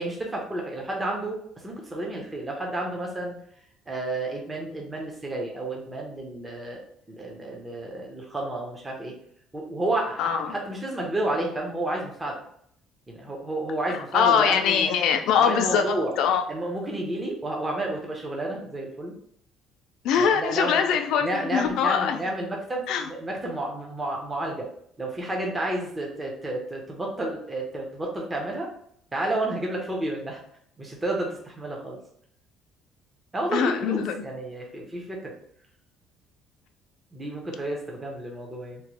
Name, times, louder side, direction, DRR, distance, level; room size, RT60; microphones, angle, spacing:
voice 1, 0.0-3.4 3.9-6.8 7.1-9.2 9.5-12.4 13.1-14.9 15.4-16.1 16.5-19.2 20.1-20.9 21.2-24.7 25.0-28.7 29.1-30.4 30.8-32.0 33.3-35.3 37.1-38.8, right 1 dB, 15° right, 0 dB, 0.6 m, -31 dB
voice 2, 10.2-10.6 14.1-16.4 20.0-22.2 22.9-23.1 33.5-34.1, left 7 dB, 70° left, 6 dB, 0.4 m, -23 dB
2.9 x 2.1 x 2.9 m, 0.66 s
cardioid pair, 145°, 0 cm